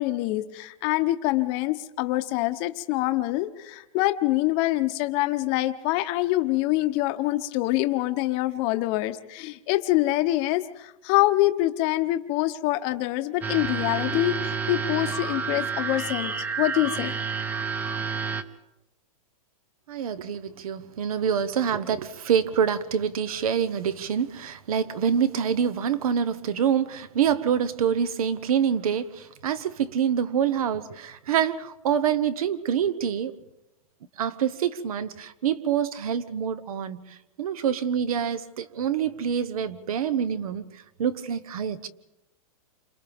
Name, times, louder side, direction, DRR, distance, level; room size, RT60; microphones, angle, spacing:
voice 1, 0.0-17.1, left 17 dB, 30° left, 9 dB, 0.9 m, -25 dB
sound 1, 13.4-18.4, right 5 dB, 10° right, 0.6 m, -29 dB
voice 2, 19.9-33.3 34.2-37.0 37.4-41.9, right 8 dB, 70° right, 14 dB, 1.2 m, -26 dB
28.5 x 26.5 x 3.6 m, 0.97 s
supercardioid pair, 160°, 19 cm